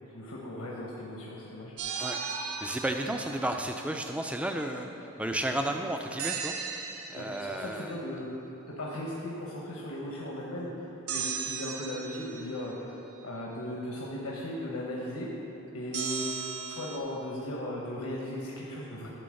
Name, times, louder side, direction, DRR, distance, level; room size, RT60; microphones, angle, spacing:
voice 1, 0.1-1.7 3.1-3.2 5.6-5.7 7.1-8.3 8.7-13.0 13.2-15.3 15.7-19.1, left 1 dB, 80° left, -4 dB, 1.1 m, -37 dB
sound 1, 1.8-3.9 6.2-7.7 11.1-12.8 15.9-17.0, right 6 dB, 85° right, 0.7 m, -36 dB
voice 2, 2.0-4.9 5.2-6.5 7.1-7.9, right 1 dB, 5° right, 4 dB, 0.4 m, -33 dB
11.0 x 3.8 x 6.4 m, 3.0 s
head